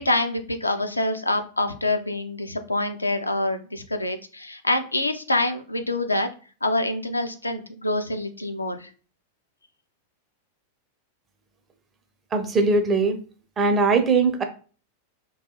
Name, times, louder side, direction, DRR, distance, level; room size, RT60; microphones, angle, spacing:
voice 1, 0.0-6.3 6.6-8.9, left 2 dB, 85° left, 7 dB, 0.3 m, -26 dB
voice 2, 12.3-13.2 13.6-14.4, right 3 dB, 20° right, 6 dB, 0.5 m, -20 dB
2.3 x 2.2 x 2.8 m, 0.38 s
figure-of-eight pair, 90°, 0 cm